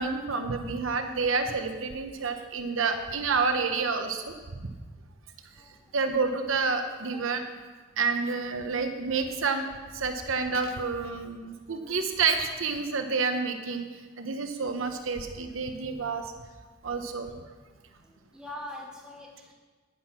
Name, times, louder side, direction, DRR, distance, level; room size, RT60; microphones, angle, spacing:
voice 1, 0.0-4.7 5.9-7.4 8.0-9.7 9.9-13.8 14.2-16.3 16.8-17.3, right 4 dB, 80° right, 6 dB, 1.0 m, -29 dB
voice 2, 5.5-6.0 7.1-7.3 17.7-19.5, left 1 dB, 5° right, -4 dB, 2.5 m, -44 dB
10.5 x 9.9 x 6.0 m, 1.4 s
head